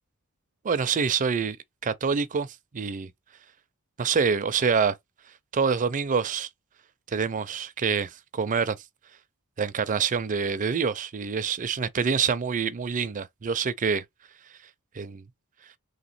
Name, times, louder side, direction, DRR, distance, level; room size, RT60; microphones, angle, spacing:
voice 1, 0.6-1.6 1.8-2.5 2.7-3.1 4.0-5.0 5.5-6.5 7.1-8.8 9.6-14.0 15.0-15.2, right 6 dB, 35° right, 0.4 m, -26 dB
3.3 x 2.9 x 4.2 m
head